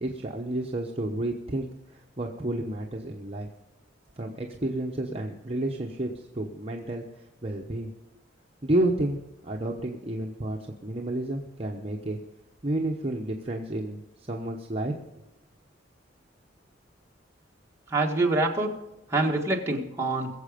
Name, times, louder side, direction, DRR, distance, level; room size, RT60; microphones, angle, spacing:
voice 1, 0.0-3.5 4.2-7.9 8.6-12.2 12.6-14.9, right 1 dB, 30° right, 0 dB, 0.9 m, -31 dB
voice 2, 17.9-18.7 19.1-20.3, right 2 dB, 15° right, -1 dB, 1.6 m, -25 dB
21.5 x 7.6 x 5.1 m, 0.96 s
head